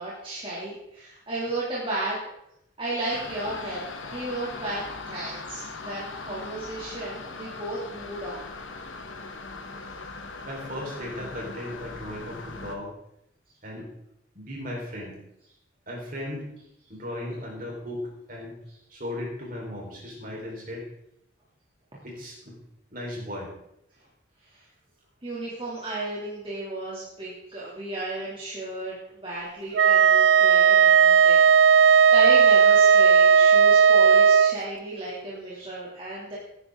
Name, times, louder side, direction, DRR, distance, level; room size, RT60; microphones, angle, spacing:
voice 1, 0.0-2.2 2.8-8.5 9.8-10.0 24.4-24.6 25.2-31.5 31.8-36.4, right 1 dB, 25° right, -7 dB, 2.7 m, -34 dB
sound 1, 3.1-12.8, left 3 dB, 90° left, 1.5 m, -40 dB
voice 2, 10.4-12.9 13.6-13.9 14.3-15.2 15.9-16.5 16.9-18.6 18.9-20.9 22.0-22.6 22.9-23.5, left 1 dB, 45° right, -2 dB, 4.4 m, -36 dB
Wind instrument woodwind instrument, 29.8-34.6, right 7 dB, 65° right, 0.4 m, -16 dB
17.0 x 9.9 x 3.8 m, 0.79 s
head